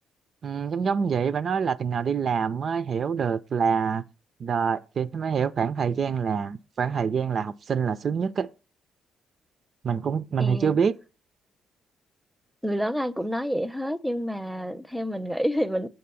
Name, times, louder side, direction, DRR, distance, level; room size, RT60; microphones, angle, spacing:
voice 1, 0.4-4.0 4.4-8.5 9.8-10.9, right 6 dB, 50° right, 0.4 m, -26 dB
voice 2, 10.4-10.8 12.6-15.9, equal, 5° right, 0.6 m, -28 dB
7.6 x 4.1 x 6.8 m
cardioid pair, 90°, 0 cm